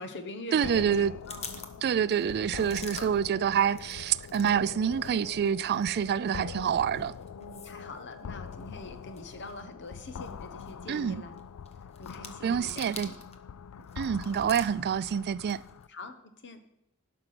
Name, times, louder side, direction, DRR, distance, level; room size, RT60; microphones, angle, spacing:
voice 1, 0.0-1.8 2.4-2.7 2.9-3.1 7.3-11.4 12.0-13.2 13.8-13.9 15.9-16.6, left 2 dB, 55° left, 1.3 m, -44 dB
voice 2, 0.5-1.1 1.8-7.1 10.9-11.2 12.4-13.1 14.0-15.6, right 8 dB, 50° right, 0.3 m, -27 dB
sound 1, 0.6-15.9, left 6 dB, 75° left, 0.4 m, -44 dB
sound 2, 0.9-4.6 4.8-13.4 13.7-15.9, left 4 dB, 30° left, 1.1 m, -48 dB
11.5 x 5.9 x 6.0 m
head